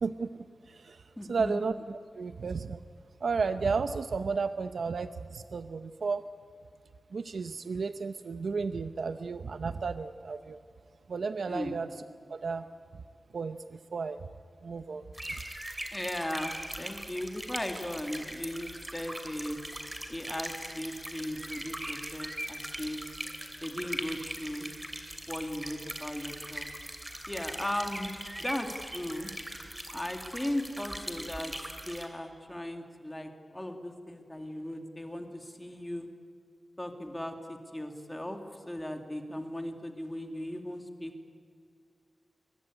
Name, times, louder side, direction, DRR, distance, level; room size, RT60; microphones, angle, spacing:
voice 1, 0.0-2.8 3.2-6.3 7.1-10.6 11.1-11.9 12.3-12.7 13.3-14.3 14.6-15.0, right 4 dB, 80° right, 10 dB, 0.7 m, -33 dB
voice 2, 1.2-1.5 11.5-11.8 15.9-19.6 20.1-23.0 23.6-24.7 25.3-26.7 27.3-29.3 29.9-31.5 31.9-36.1 36.8-38.4 38.7-41.1, left 1 dB, 10° left, 5 dB, 2.3 m, -37 dB
sound 1, 15.1-32.1, right 1 dB, 15° right, 2.8 m, -40 dB
22.5 x 22.0 x 9.8 m, 2.1 s
wide cardioid pair, 125°, 0 cm